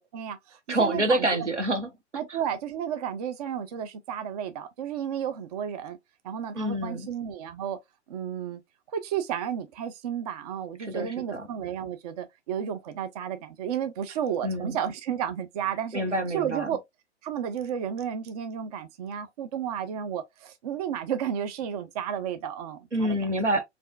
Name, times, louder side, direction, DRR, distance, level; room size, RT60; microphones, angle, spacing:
voice 1, 0.0-1.5 2.1-6.0 6.2-7.8 8.1-8.6 8.9-16.0 16.3-16.8 17.2-23.2, right 9 dB, 35° right, 0.5 m, -32 dB
voice 2, 0.7-1.9 6.5-7.1 10.8-11.5 14.4-14.8 15.9-16.7 22.9-23.6, right 1 dB, 85° right, 1.2 m, -27 dB
5.3 x 2.5 x 2.3 m
figure-of-eight pair, 110°, 35 cm